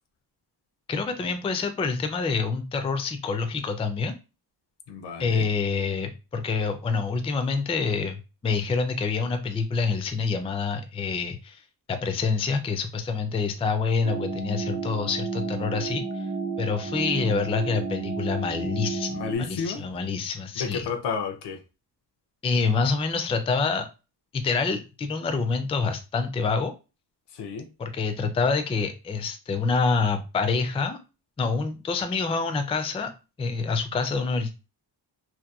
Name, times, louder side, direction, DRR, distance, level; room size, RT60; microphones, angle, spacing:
voice 1, 0.9-4.1 5.2-11.6 11.9-16.3 16.6-20.9 22.4-23.9 24.3-26.7 27.8-31.0 31.4-33.1 33.4-34.5, left 4 dB, 15° left, 0.3 m, -27 dB
voice 2, 4.9-5.5 19.1-19.8 20.6-21.6 27.3-27.7, left 5 dB, 75° left, 0.6 m, -31 dB
sound 1, 14.0-19.4, right 4 dB, 90° right, 0.8 m, -32 dB
2.8 x 2.2 x 2.3 m
cardioid pair, 95°, 42 cm